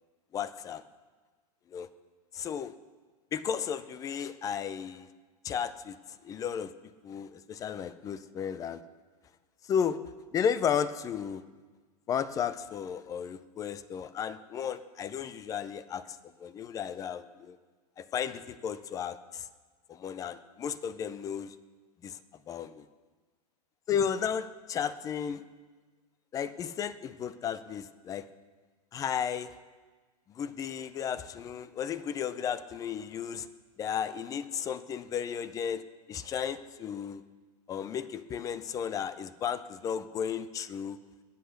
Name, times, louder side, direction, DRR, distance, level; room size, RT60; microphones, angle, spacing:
voice 1, 0.3-0.8 1.7-1.9 2.3-2.7 3.3-5.1 5.4-6.0 6.2-6.7 7.0-8.8 9.7-10.0 10.3-11.4 12.1-17.6 18.0-19.5 19.9-21.5 22.0-22.2 22.5-22.8 23.9-25.4 26.3-28.3 28.9-29.5 30.3-33.5 33.8-35.8 36.1-37.2 37.7-41.0, left 8 dB, 15° left, 14 dB, 0.5 m, -34 dB
21.0 x 8.0 x 6.5 m, 1.4 s
supercardioid pair, 150°, 20 cm